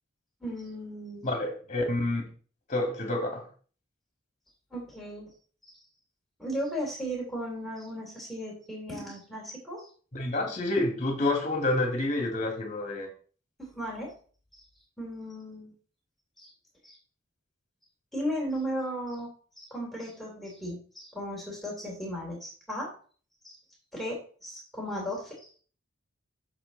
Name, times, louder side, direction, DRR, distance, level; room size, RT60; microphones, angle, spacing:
voice 1, 0.4-1.3 4.7-5.3 6.4-9.9 13.6-14.1 14.5-14.6 15.0-15.7 16.4-16.5 16.8-16.9 18.1-22.9 23.4-23.6 23.9-25.6, equal, ahead, -4 dB, 3.1 m, -36 dB
voice 2, 1.2-2.2 2.7-3.5 10.1-13.1, left 2 dB, 35° left, 3 dB, 2.3 m, -28 dB
7.7 x 6.7 x 4.0 m, 0.42 s
head